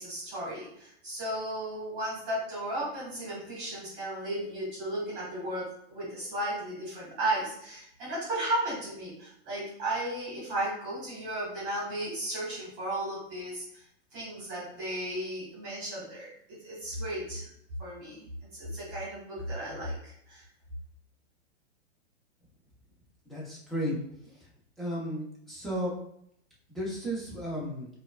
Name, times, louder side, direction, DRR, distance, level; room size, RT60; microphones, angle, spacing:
voice 1, 0.0-13.8 14.1-17.5 17.8-20.4, right 1 dB, 35° right, -6 dB, 1.4 m, -35 dB
voice 2, 23.3-24.0 24.2-24.4 24.8-25.9 26.7-27.9, equal, ahead, -7 dB, 0.8 m, -34 dB
4.4 x 2.5 x 2.3 m, 0.72 s
hypercardioid pair, 140°, 34 cm